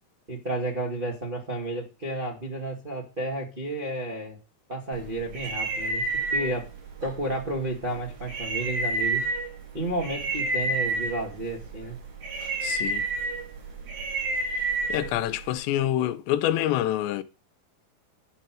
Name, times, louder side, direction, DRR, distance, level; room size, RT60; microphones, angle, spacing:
voice 1, 0.3-4.4 4.7-6.7 7.0-9.3 9.7-12.0, right 1 dB, 35° right, 0.8 m, -32 dB
sound 1, 4.9-15.5, right 2 dB, 75° right, 6.6 m, -30 dB
voice 2, 12.6-13.1 14.9-17.2, left 12 dB, 90° left, 3.0 m, -26 dB
11.0 x 5.6 x 7.6 m
omnidirectional pair, 4.9 m